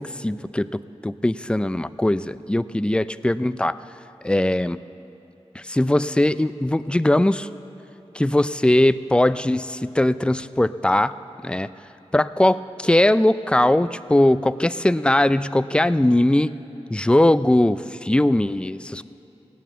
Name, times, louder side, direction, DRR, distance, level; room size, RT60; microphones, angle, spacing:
voice 1, 0.0-3.7 4.2-4.8 5.6-7.5 8.1-11.1 11.4-11.7 12.1-16.5 16.9-19.0, left 1 dB, 10° left, 14 dB, 0.4 m, -20 dB
17.0 x 9.1 x 7.3 m, 3.0 s
wide cardioid pair, 55°, 11 cm